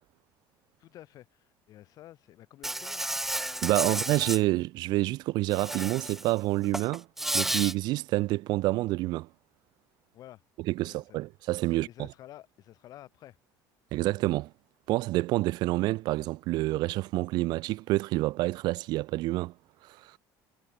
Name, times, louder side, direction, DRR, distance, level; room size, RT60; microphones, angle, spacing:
voice 1, 0.8-3.1 3.8-4.0 10.1-10.4 10.8-11.2 11.7-13.4, left 13 dB, 50° left, 7.1 m, -50 dB
Insect, 2.6-4.4 5.5-6.3 6.6-7.7, right 1 dB, 5° right, 1.2 m, -32 dB
voice 2, 3.6-7.1 7.3-9.3 10.7-11.9 13.9-14.5 14.9-19.5 20.0-20.2, right 19 dB, 60° right, 0.5 m, -28 dB
cardioid pair, 160°, 8 cm